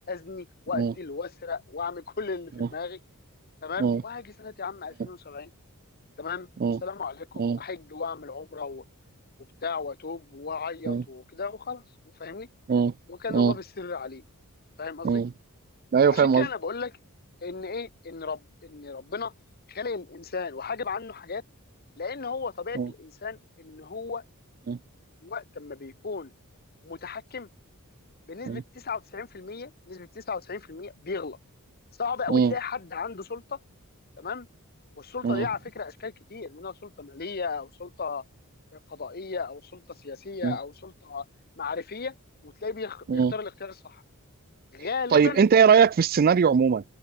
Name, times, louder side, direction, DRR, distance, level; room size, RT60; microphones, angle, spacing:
voice 1, 0.1-3.0 3.6-5.5 6.2-6.5 6.8-8.8 9.6-11.8 12.2-12.5 13.1-14.2 14.8-15.2 16.1-16.9 17.4-19.3 19.7-21.4 22.0-24.2 25.2-26.3 26.8-27.5 28.3-31.4 32.0-33.6 34.2-34.5 35.0-38.2 38.7-41.3 41.6-42.1 42.4-44.0 44.7-45.5, left 5 dB, 45° left, 1.2 m, -35 dB
voice 2, 15.9-16.5 22.8-22.9 24.7-24.8 28.5-28.6 32.3-32.5 35.2-35.5 40.4-40.6 43.1-43.3 45.1-46.8, right 6 dB, 40° right, 0.4 m, -21 dB
head